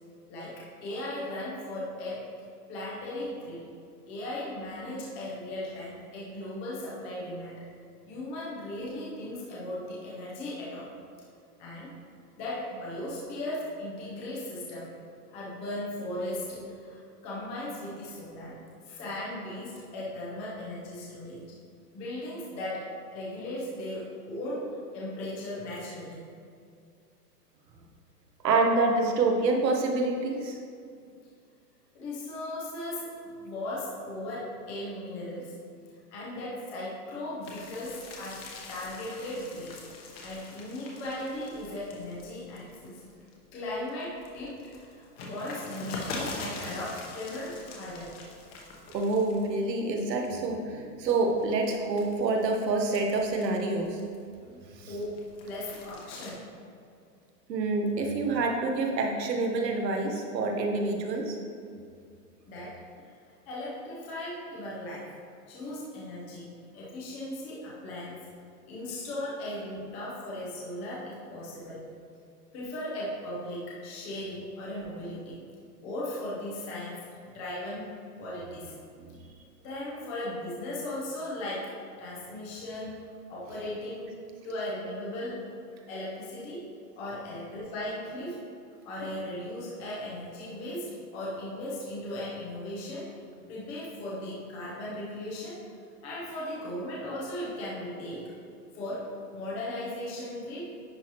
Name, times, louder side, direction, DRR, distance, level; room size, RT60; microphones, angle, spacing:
voice 1, 0.3-2.3 2.7-3.6 4.1-7.7 8.1-10.9 11.6-11.9 12.4-14.9 15.3-18.6 18.9-21.4 21.9-26.2 31.9-35.5 36.1-39.8 40.2-43.0 43.5-48.2 54.9-56.5 62.5-62.8 63.5-65.1 65.5-68.3 68.7-71.8 72.5-75.4 75.8-77.9 78.2-78.7 79.6-83.0 83.3-84.2 84.4-85.4 85.9-86.7 87.0-88.5 88.8-93.1 93.5-95.6 96.0-98.3 98.7-100.7, left 1 dB, 15° left, -6 dB, 0.6 m, -37 dB
voice 2, 28.4-30.6 48.9-54.0 54.5-54.9 57.5-61.4 79.0-79.2, right 3 dB, 85° right, 2 dB, 1.2 m, -27 dB
sound 1, 37.4-43.3 43.8-49.7 50.0-50.5 51.0-54.3 54.7-56.3, left 3 dB, 35° left, 1.1 m, -43 dB
10.5 x 4.4 x 3.0 m, 2.3 s
hypercardioid pair, 165°, 48 cm